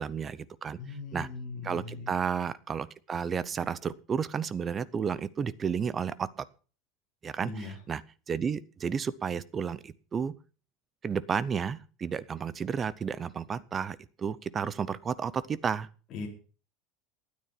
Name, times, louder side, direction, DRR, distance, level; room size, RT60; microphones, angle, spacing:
voice 1, 0.0-0.8 1.1-1.3 1.6-6.3 7.2-8.0 8.3-10.3 11.0-15.9, right 6 dB, 20° right, 19 dB, 0.6 m, -32 dB
voice 2, 0.8-2.1 7.4-7.8 16.1-16.3, left 4 dB, 30° left, -1 dB, 4.0 m, -39 dB
12.5 x 9.5 x 5.7 m, 0.38 s
supercardioid pair, 165°, 0 cm